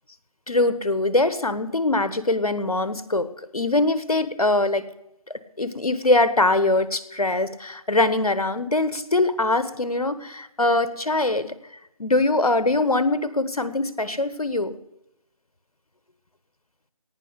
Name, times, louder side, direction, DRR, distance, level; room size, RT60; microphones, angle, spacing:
voice 1, 0.5-3.3 3.5-4.8 5.6-11.5 12.0-14.7, left 2 dB, 90° left, 13 dB, 1.3 m, -22 dB
18.0 x 6.0 x 8.1 m, 0.84 s
figure-of-eight pair, 165°, 18 cm